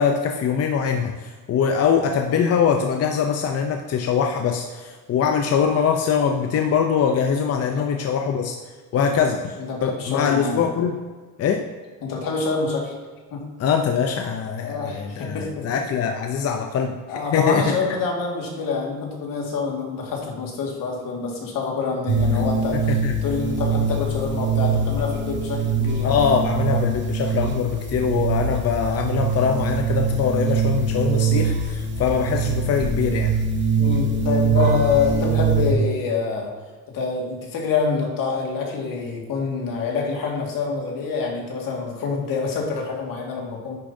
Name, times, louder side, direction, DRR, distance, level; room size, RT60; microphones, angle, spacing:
voice 1, 0.0-8.6 8.9-9.6 9.8-11.0 11.4-11.7 13.6-17.0 17.3-17.8 22.7-23.1 26.0-33.3, left 6 dB, 45° left, 4 dB, 0.6 m, -22 dB
voice 2, 9.6-10.6 12.0-12.9 13.3-13.5 14.6-15.7 17.1-26.2 26.7-26.8 33.8-36.5 36.9-43.8, left 5 dB, 75° left, -1 dB, 1.9 m, -26 dB
sound 1, 22.1-35.7, right 4 dB, 35° right, 0.9 m, -23 dB
10.0 x 6.9 x 2.7 m, 1.4 s
cardioid pair, 170°, 33 cm